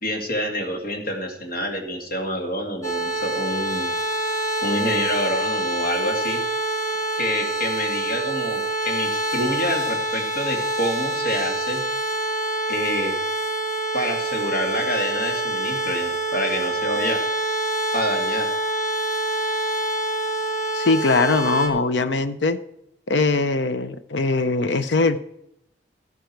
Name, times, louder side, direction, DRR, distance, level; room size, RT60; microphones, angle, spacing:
voice 1, 0.0-3.9 4.6-6.4 7.2-11.8 12.7-13.2 13.9-17.2 17.9-18.5, equal, 55° left, 2 dB, 2.5 m, -27 dB
sound 1, 2.8-21.7, right 2 dB, 20° left, 2.5 m, -26 dB
voice 2, 20.7-22.6 23.1-25.2, left 3 dB, 85° left, 12 dB, 0.7 m, -21 dB
13.5 x 11.5 x 4.6 m, 0.80 s
head